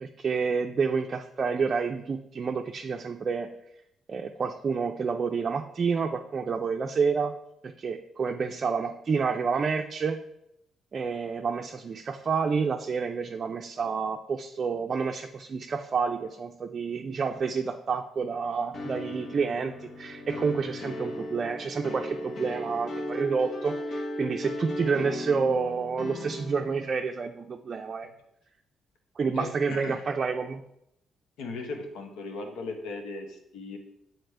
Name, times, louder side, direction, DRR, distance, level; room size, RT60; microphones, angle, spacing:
voice 1, 0.0-3.5 4.1-7.3 7.8-10.2 10.9-28.1 29.2-30.6, right 5 dB, 45° right, 3 dB, 0.4 m, -29 dB
sound 1, 18.7-27.0, left 1 dB, 50° left, 0.9 m, -36 dB
voice 2, 29.3-30.0 31.4-33.8, left 3 dB, 90° left, 3 dB, 1.0 m, -37 dB
7.8 x 4.2 x 3.3 m, 0.79 s
cardioid pair, 90°, 0 cm